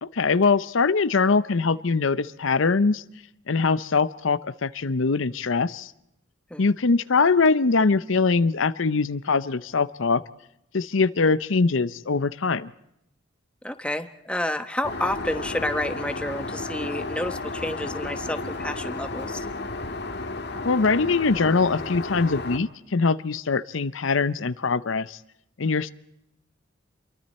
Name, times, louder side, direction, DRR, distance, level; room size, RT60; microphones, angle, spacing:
voice 1, 0.0-3.0 3.5-5.9 6.6-10.2 10.7-12.7 20.6-25.2 25.6-25.9, left 4 dB, 75° left, 16 dB, 0.7 m, -22 dB
voice 2, 13.6-19.5, left 1 dB, 5° left, 9 dB, 1.0 m, -30 dB
Aircraft, 14.8-22.6, left 3 dB, 55° left, 1.7 m, -33 dB
28.0 x 23.0 x 4.3 m, 0.80 s
head